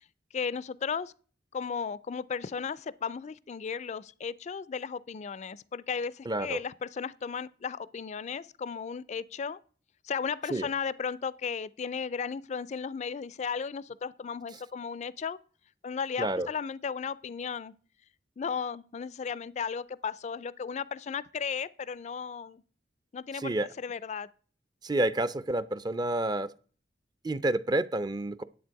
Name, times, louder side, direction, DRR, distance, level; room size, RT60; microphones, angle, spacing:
voice 1, 0.3-1.1 1.5-9.6 10.0-15.4 15.8-17.7 18.4-22.6 23.1-24.3, left 6 dB, 40° left, 0.4 m, -35 dB
voice 2, 6.3-6.6 10.5-10.7 16.2-16.5 23.4-23.7 24.8-26.5 27.2-28.4, right 1 dB, 25° right, 0.4 m, -29 dB
10.0 x 8.3 x 4.6 m
head